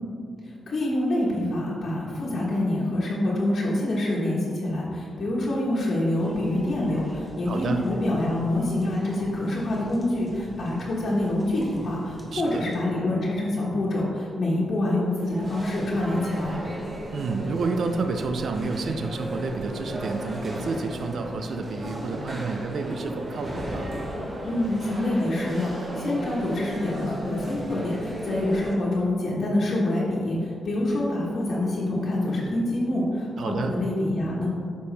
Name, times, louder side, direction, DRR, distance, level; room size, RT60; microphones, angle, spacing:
voice 1, 0.4-16.6 24.4-34.5, left 1 dB, 55° left, -6 dB, 1.3 m, -26 dB
sound 1, 6.2-12.8, right 1 dB, ahead, 1.3 m, -46 dB
voice 2, 7.5-7.8 12.3-12.7 17.1-23.9 33.4-33.8, right 3 dB, 65° right, 6 dB, 0.5 m, -29 dB
interior ambience, 15.1-28.7, right 1 dB, 35° right, 1.4 m, -35 dB
8.8 x 5.2 x 3.4 m, 2.5 s
cardioid pair, 105°, 0 cm